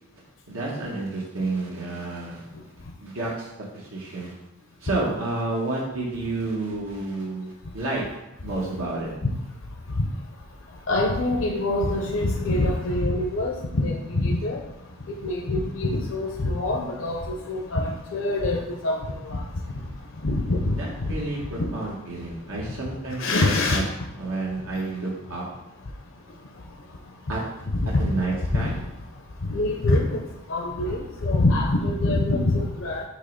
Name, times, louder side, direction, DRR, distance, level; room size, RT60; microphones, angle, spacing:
voice 1, 0.5-2.4 3.0-3.5 3.7-4.3 4.8-8.0 8.4-9.1 20.8-23.8 24.2-25.4 27.3-27.4 27.9-28.7, right 2 dB, 85° right, -4 dB, 1.1 m, -30 dB
voice 2, 10.9-14.6 15.1-19.4 20.2-21.1 21.6-21.7 23.2-23.8 27.7-28.1 28.5-28.7 29.5-30.2 30.5-33.0, left 2 dB, 65° left, 0 dB, 0.6 m, -24 dB
6.3 x 3.0 x 5.1 m, 0.92 s
head